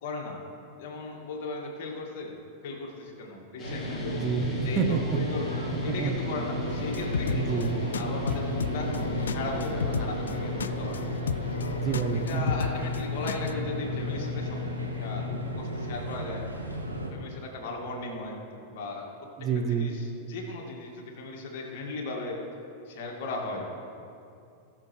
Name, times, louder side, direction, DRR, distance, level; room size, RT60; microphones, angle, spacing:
voice 1, 0.0-0.4 0.8-2.4 2.6-4.3 4.6-9.0 9.3-11.0 11.9-14.6 15.0-16.5 17.1-18.4 18.7-19.1 19.4-22.4 22.9-23.7, left 3 dB, 50° left, 0 dB, 2.1 m, -37 dB
sound 1, 3.6-15.5, left 5 dB, 25° left, 1.3 m, -38 dB
sound 2, 3.6-17.1, right 1 dB, 85° right, 1.1 m, -34 dB
voice 2, 4.2-5.2 5.9-6.1 7.3-7.8 11.8-12.4 19.4-19.9, right 6 dB, 30° right, 4 dB, 0.8 m, -28 dB
sound 3, 6.7-13.5, left 6 dB, 70° left, 0.3 m, -34 dB
19.0 x 6.5 x 3.3 m, 2.6 s
figure-of-eight pair, 90°, 0 cm